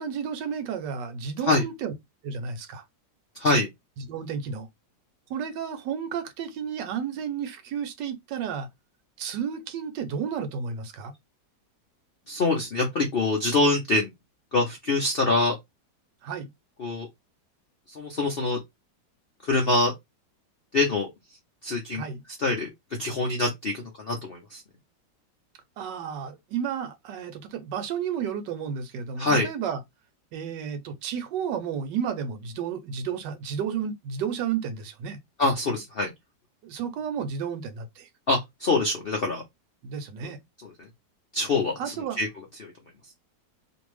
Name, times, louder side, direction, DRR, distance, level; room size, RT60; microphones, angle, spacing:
voice 1, 0.0-1.9 2.2-2.8 4.1-4.7 5.3-8.7 9.2-11.1 16.2-16.5 21.9-22.2 25.8-29.8 30.3-35.2 36.6-38.1 39.8-40.4 41.8-42.2, right 7 dB, 80° right, 1.3 m, -32 dB
voice 2, 3.3-3.7 12.3-14.1 14.5-15.6 16.8-17.1 17.9-18.6 19.4-19.9 20.7-21.1 21.6-22.0 22.4-22.7 23.0-24.6 29.2-29.5 35.4-36.1 38.3-39.4 40.2-40.3 40.6-40.9 41.3-42.3 42.6-42.7, left 2 dB, 65° left, 0.5 m, -25 dB
2.8 x 2.6 x 3.1 m
omnidirectional pair, 1.9 m